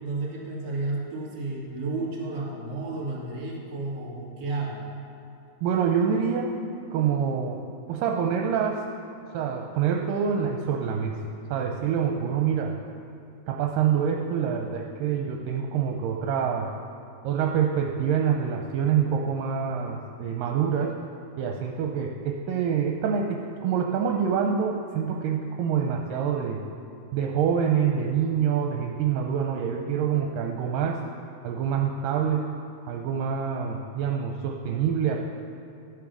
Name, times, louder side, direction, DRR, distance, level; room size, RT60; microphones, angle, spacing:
voice 1, 0.0-4.8, right 3 dB, 35° right, -5 dB, 3.3 m, -32 dB
voice 2, 5.6-6.6 6.9-7.6 7.9-8.8 9.3-11.2 11.5-12.7 13.5-16.7 17.2-21.0 21.4-26.6 27.1-31.0 31.4-32.5 32.9-35.2, right 7 dB, 80° right, 1 dB, 2.3 m, -26 dB
13.5 x 8.7 x 6.1 m, 2.5 s
omnidirectional pair, 4.1 m